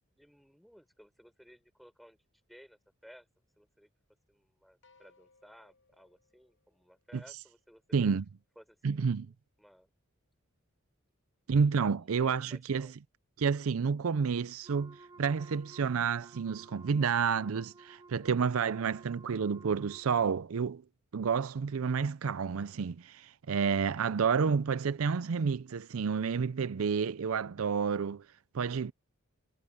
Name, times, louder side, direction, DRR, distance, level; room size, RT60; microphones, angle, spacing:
voice 1, 0.2-2.2 2.5-3.3 3.6-3.9 4.3-8.1 8.6-9.3 9.6-9.9 11.9-13.0, equal, ahead, 6.0 m, -58 dB
sound 1, 4.8-7.4, left 4 dB, 65° left, 5.9 m, -67 dB
voice 2, 7.9-8.2 8.8-9.3 11.5-12.9 13.4-20.8 21.1-28.2 28.5-28.9, right 6 dB, 75° right, 0.5 m, -30 dB
Wind instrument woodwind instrument, 14.6-20.4, right 3 dB, 20° right, 2.2 m, -55 dB
head